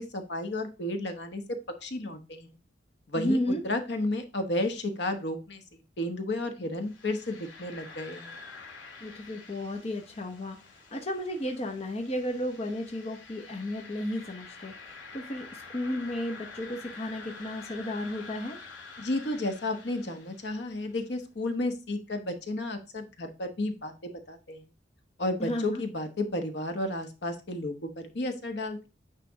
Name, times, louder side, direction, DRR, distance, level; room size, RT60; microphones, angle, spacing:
voice 1, 0.0-2.5 3.1-3.4 3.6-8.4 19.0-24.6 25.2-28.9, left 1 dB, 65° left, 1.1 m, -32 dB
voice 2, 3.2-3.6 9.0-18.6 25.4-25.8, left 1 dB, 35° left, 0.8 m, -33 dB
sound 1, 6.8-20.7, left 4 dB, 90° left, 2.1 m, -48 dB
9.3 x 3.3 x 3.5 m
head